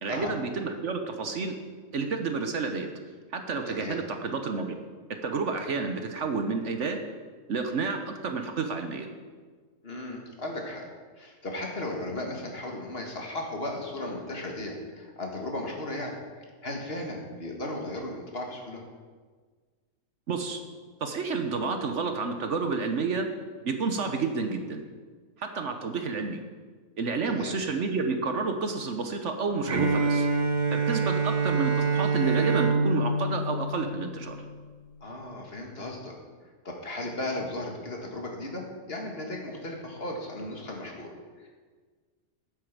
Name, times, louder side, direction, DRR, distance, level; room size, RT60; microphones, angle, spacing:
voice 1, 0.0-1.5 1.9-2.9 3.3-4.8 5.2-7.0 7.5-9.1 20.3-20.6 21.0-23.3 23.6-24.8 25.4-26.4 27.0-30.3 30.7-34.4, right 4 dB, 60° right, 5 dB, 1.2 m, -30 dB
voice 2, 3.7-4.0 9.8-10.9 11.2-16.2 16.6-18.8 27.2-27.5 35.0-36.2 36.6-41.1 41.4-41.5, left 1 dB, 45° left, 1 dB, 1.9 m, -36 dB
Bowed string instrument, 29.7-34.6, right 3 dB, 40° right, 0.9 m, -26 dB
9.4 x 8.5 x 7.2 m, 1.5 s
omnidirectional pair, 1.5 m